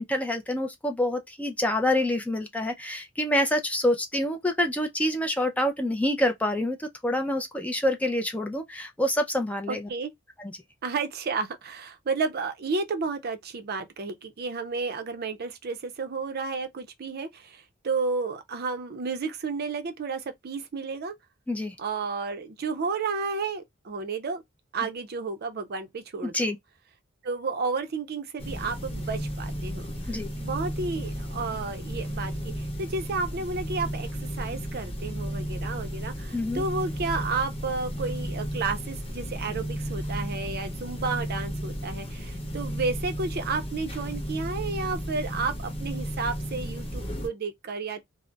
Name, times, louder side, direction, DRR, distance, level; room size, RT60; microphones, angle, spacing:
voice 1, 0.0-9.9 10.4-10.5 21.5-21.7 26.2-26.6 30.1-30.3 36.3-36.6, left 1 dB, 5° left, 0.3 m, -27 dB
voice 2, 9.7-10.1 10.8-21.1 21.8-24.4 24.7-26.5 27.2-34.1 34.4-48.0, right 4 dB, 50° right, 0.5 m, -32 dB
sound 1, 28.4-47.3, equal, 30° left, 0.8 m, -34 dB
2.2 x 2.0 x 3.7 m
head